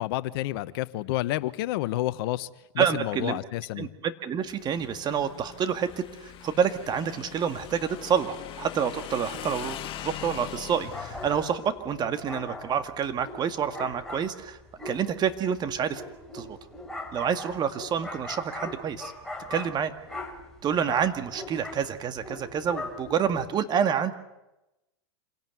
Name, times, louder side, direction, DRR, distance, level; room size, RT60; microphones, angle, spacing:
voice 1, 0.0-2.5 2.7-3.9, left 16 dB, 60° left, 15 dB, 1.0 m, -29 dB
voice 2, 2.8-3.4 3.8-5.9 6.2-9.8 10.0-14.6 14.8-16.0 16.3-16.6 17.1-19.1 19.5-19.9 20.6-24.1, right 7 dB, 30° right, 9 dB, 1.9 m, -28 dB
Motorcycle / Engine, 4.4-11.4, left 11 dB, 40° left, 1.8 m, -41 dB
sound 1, 10.9-23.5, left 2 dB, 5° left, 4.7 m, -40 dB
26.5 x 17.5 x 9.3 m, 0.98 s
hypercardioid pair, 110°, 14 cm